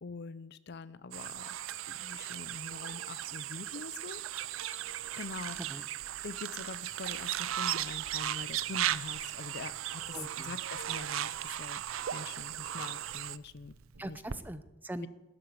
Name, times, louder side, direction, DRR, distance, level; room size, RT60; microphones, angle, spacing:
voice 1, 0.0-1.6 1.9-4.2 5.2-5.9 6.2-11.8 12.1-14.2 15.0-15.1, left 4 dB, 55° left, 16 dB, 0.6 m, -44 dB
sound 1, 1.1-13.4, right 12 dB, 70° right, 0.4 m, -37 dB
voice 2, 4.3-4.8 5.1-5.3 5.5-5.8 10.1-10.5 14.0-15.1, right 1 dB, 10° right, 12 dB, 0.6 m, -43 dB
Crackle, 4.8-14.4, right 3 dB, 90° right, 0.9 m, -54 dB
13.0 x 11.0 x 7.7 m, 1.0 s
head